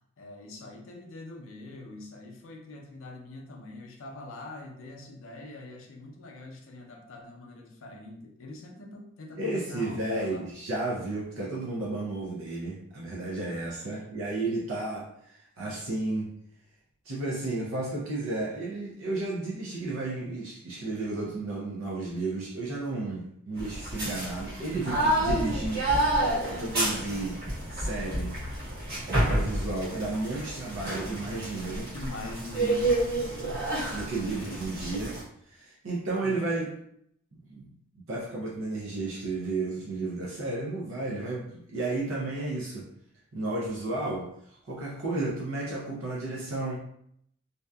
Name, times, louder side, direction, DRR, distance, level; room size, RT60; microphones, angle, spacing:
voice 1, 0.2-10.4 13.8-14.0 31.9-33.1 33.4-33.7 34.3-35.0 36.1-36.4, left 2 dB, 70° left, 1 dB, 0.5 m, -43 dB
voice 2, 9.4-16.3 17.0-25.8 26.1-27.4 27.7-28.4 29.1-31.9 33.9-36.7 37.3-37.7 38.1-42.9 43.3-46.8, right 2 dB, 80° right, -5 dB, 0.6 m, -33 dB
sound 1, 23.6-35.2, right 1 dB, 50° right, 1.4 m, -29 dB
2.7 x 2.3 x 2.2 m, 0.71 s
head